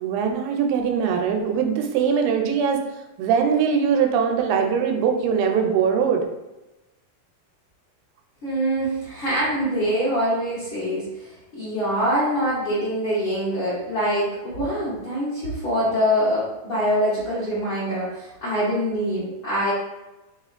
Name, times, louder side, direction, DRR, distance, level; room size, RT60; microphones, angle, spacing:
voice 1, 0.0-2.8 3.2-6.2, right 7 dB, 80° right, 3 dB, 2.4 m, -21 dB
voice 2, 8.4-19.7, equal, 60° left, -10 dB, 1.3 m, -24 dB
5.6 x 3.5 x 2.4 m, 1.0 s
omnidirectional pair, 4.4 m